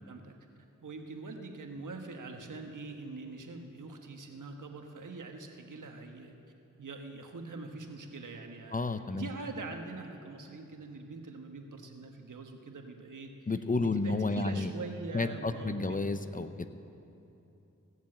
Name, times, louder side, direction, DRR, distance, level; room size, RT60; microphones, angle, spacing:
voice 1, 0.8-6.3 6.8-8.8 9.1-13.3 13.8-16.0, right 3 dB, 75° right, 4 dB, 1.3 m, -43 dB
voice 2, 8.7-9.3 13.5-14.7 15.1-16.7, left 3 dB, 25° left, 10 dB, 0.6 m, -31 dB
16.5 x 7.3 x 7.5 m, 2.9 s
cardioid pair, 50°, 31 cm